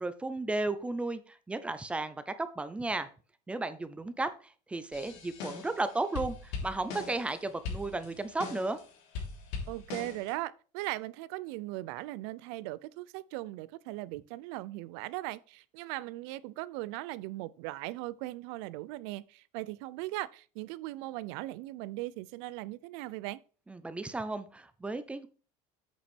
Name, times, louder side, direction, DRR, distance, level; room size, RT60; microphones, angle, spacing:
voice 1, 0.0-3.1 3.5-8.8 23.7-25.3, right 2 dB, 10° right, 0.5 m, -34 dB
sound 1, 4.9-5.8 6.2-7.4 7.7-8.8 9.2-10.3, left 4 dB, 90° left, 3.3 m, -40 dB
voice 2, 9.7-23.4, right 18 dB, 75° right, 0.5 m, -39 dB
8.4 x 5.9 x 4.4 m
cardioid pair, 165°, 14 cm